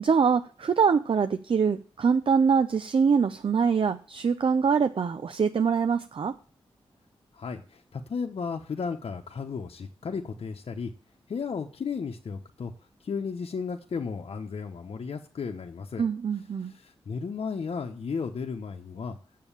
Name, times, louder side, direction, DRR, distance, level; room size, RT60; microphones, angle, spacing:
voice 1, 0.0-6.3 16.0-16.7, right 6 dB, 60° right, 10 dB, 0.6 m, -24 dB
voice 2, 7.3-10.9 11.3-12.7 13.0-16.1 16.7-19.2, left 5 dB, 70° left, 2 dB, 0.9 m, -34 dB
7.6 x 7.2 x 7.2 m, 0.40 s
cardioid pair, 50°, 10 cm